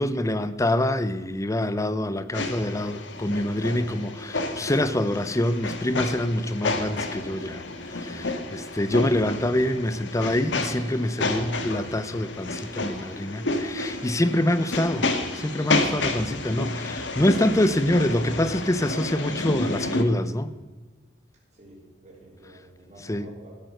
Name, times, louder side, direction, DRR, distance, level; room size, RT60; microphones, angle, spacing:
voice 1, 0.0-20.5 23.0-23.3, left 1 dB, 20° left, 0.6 m, -25 dB
sound 1, 2.3-20.0, left 2 dB, 85° left, 1.5 m, -30 dB
voice 2, 21.5-23.5, right 1 dB, 40° right, 4.3 m, -49 dB
13.5 x 9.1 x 6.6 m
head